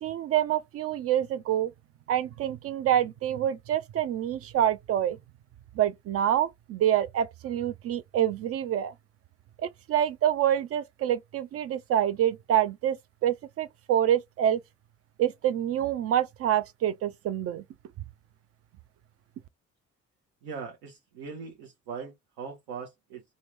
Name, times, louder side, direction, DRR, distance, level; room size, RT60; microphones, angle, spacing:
voice 1, 0.0-1.7 2.1-5.2 5.8-8.9 9.6-13.0 13.2-14.6 15.2-17.6, right 11 dB, 40° right, 0.4 m, -26 dB
voice 2, 20.4-23.2, right 5 dB, 65° right, 1.0 m, -40 dB
2.9 x 2.7 x 3.1 m
figure-of-eight pair, 45°, 39 cm